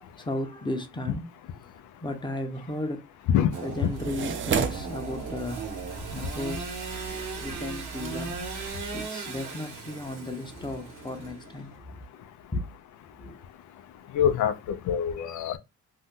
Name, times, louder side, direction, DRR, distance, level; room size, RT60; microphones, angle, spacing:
voice 1, 0.2-1.3 2.0-3.0 3.6-5.7 6.1-6.7 7.4-8.5 8.9-12.0 12.5-12.6 13.2-13.4, left 1 dB, 15° left, 0.7 m, -35 dB
Engine / Sawing, 3.5-11.8, right 4 dB, 70° right, 1.2 m, -38 dB
sound 1, 3.8-9.1, right 6 dB, 40° right, 0.5 m, -35 dB
voice 2, 14.1-15.6, left 9 dB, 75° left, 0.5 m, -24 dB
2.7 x 2.1 x 3.5 m
cardioid pair, 90°, 30 cm